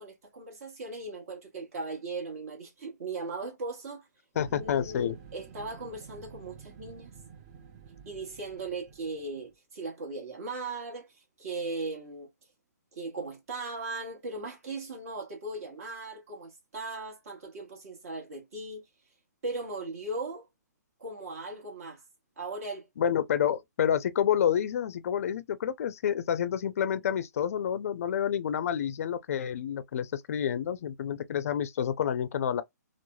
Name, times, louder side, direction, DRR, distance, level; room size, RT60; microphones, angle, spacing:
voice 1, 0.0-4.1 4.5-7.1 8.0-12.3 12.9-18.8 19.4-20.5 21.0-22.0 22.4-22.9, right 3 dB, 55° right, 1.1 m, -38 dB
sound 1, 4.3-9.5, right 7 dB, 25° right, 0.4 m, -50 dB
voice 2, 4.4-5.1 23.0-32.6, left 9 dB, 55° left, 0.4 m, -29 dB
3.1 x 2.0 x 2.2 m
hypercardioid pair, 150°, 10 cm